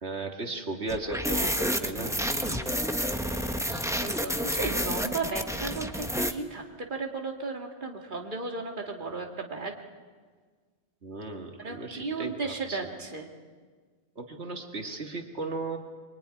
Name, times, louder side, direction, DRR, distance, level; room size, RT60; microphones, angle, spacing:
voice 1, 0.0-2.2 3.7-3.9 4.4-4.7 11.0-12.8 14.2-15.8, right 2 dB, 85° right, 3 dB, 2.3 m, -36 dB
sound 1, 0.9-6.3, equal, 5° right, 1.2 m, -29 dB
voice 2, 2.0-2.8 4.0-9.7 11.6-13.3, right 3 dB, 50° right, 2 dB, 2.4 m, -35 dB
24.5 x 23.5 x 9.9 m, 1.5 s
omnidirectional pair, 1.1 m